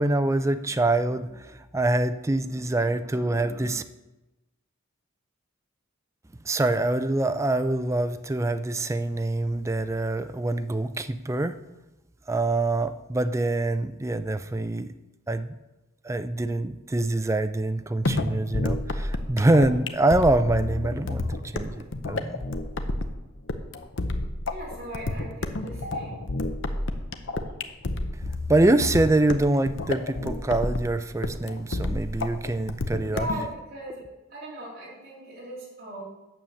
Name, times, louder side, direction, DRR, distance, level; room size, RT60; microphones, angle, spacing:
voice 1, 0.0-3.8 6.4-11.6 12.3-14.9 15.3-15.5 16.0-21.3 21.5-22.4 28.5-33.3, right 2 dB, 15° right, 10 dB, 0.4 m, -25 dB
sound 1, 18.1-33.5, left 2 dB, 60° left, 0.8 m, -30 dB
voice 2, 24.5-26.3 33.0-36.0, equal, 45° right, -5 dB, 3.2 m, -38 dB
9.1 x 6.9 x 7.2 m, 1.0 s
head